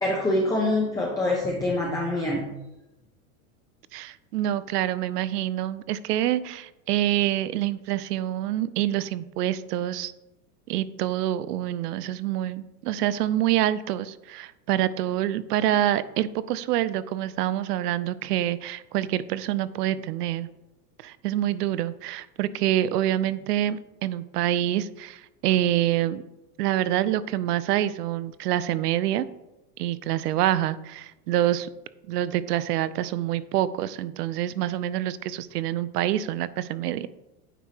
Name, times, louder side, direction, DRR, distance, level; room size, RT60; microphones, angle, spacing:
voice 1, 0.0-2.4, left 1 dB, 10° left, -3 dB, 0.7 m, -25 dB
voice 2, 3.9-10.1 10.7-20.5 21.0-26.2 26.6-29.3 29.8-31.7 32.1-37.1, right 12 dB, 85° right, 16 dB, 0.6 m, -26 dB
9.0 x 4.6 x 2.9 m, 0.95 s
supercardioid pair, 135°, 46 cm